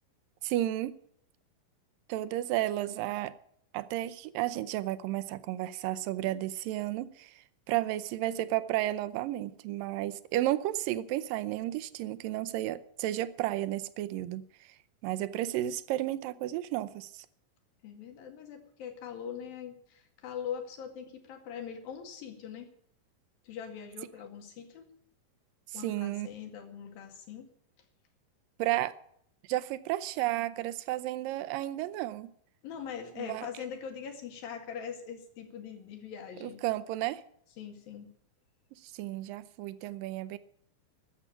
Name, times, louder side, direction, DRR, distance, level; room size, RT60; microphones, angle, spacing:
voice 1, 0.4-0.9 2.1-3.3 3.7-7.3 7.7-14.4 15.0-17.3 25.7-26.3 28.6-28.9 29.5-32.3 33.2-33.5 36.4-37.2 38.8-40.4, right 14 dB, 80° right, 2.3 m, -32 dB
voice 2, 17.8-22.7 23.4-24.9 25.7-27.5 32.6-36.6 37.6-38.1, left 8 dB, 80° left, 3.8 m, -42 dB
13.0 x 7.3 x 9.9 m
omnidirectional pair, 4.1 m